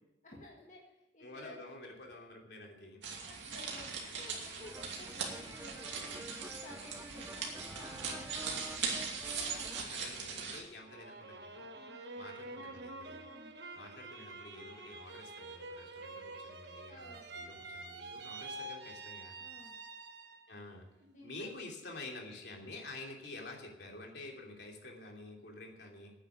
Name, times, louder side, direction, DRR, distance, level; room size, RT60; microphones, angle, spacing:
voice 1, 0.2-1.7 3.3-9.9 11.7-12.0 13.3-13.5 16.9-17.3 19.4-19.8 21.1-21.5, left 1 dB, 40° left, -2 dB, 1.8 m, -54 dB
voice 2, 1.2-3.0 9.9-11.7 12.2-13.3 13.7-19.4 20.5-20.8 21.2-26.1, left 2 dB, 70° left, 0 dB, 2.9 m, -49 dB
sound 1, 3.0-10.6, right 5 dB, 90° right, 2.7 m, -40 dB
sound 2, 4.6-9.8, right 1 dB, 10° right, 0.7 m, -50 dB
sound 3, 10.8-20.6 21.0-21.7, right 2 dB, 70° right, 1.2 m, -47 dB
9.7 x 9.1 x 9.6 m, 0.97 s
head